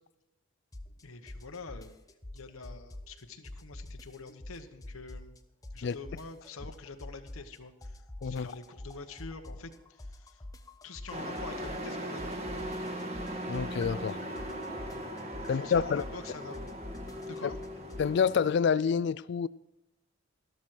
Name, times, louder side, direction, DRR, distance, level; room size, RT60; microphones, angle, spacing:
sound 1, 0.7-1.0 1.3-3.2 3.4-5.4 5.6-7.6 7.8-11.9 12.2-18.1, left 1 dB, 15° left, 0.7 m, -45 dB
voice 1, 1.0-2.0 2.3-5.4 5.7-10.4 10.8-12.4 14.6-15.1 15.5-16.6 17.1-17.6, left 4 dB, 85° left, 1.0 m, -46 dB
Truck, 11.1-18.5, equal, 30° right, 1.6 m, -39 dB
voice 2, 13.5-14.2 15.5-16.0 18.0-19.5, left 6 dB, 55° left, 0.3 m, -27 dB
13.0 x 12.5 x 4.5 m
head